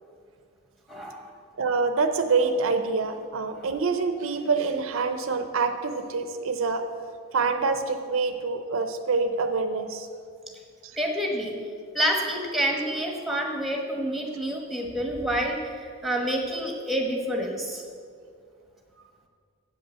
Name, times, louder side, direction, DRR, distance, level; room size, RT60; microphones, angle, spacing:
voice 1, 0.9-1.2 11.0-11.5 11.9-17.8, equal, ahead, 1 dB, 1.1 m, -28 dB
voice 2, 1.6-6.8 7.3-10.1 10.8-11.0, right 4 dB, 75° right, 7 dB, 0.6 m, -26 dB
8.1 x 5.5 x 7.7 m, 2.2 s
head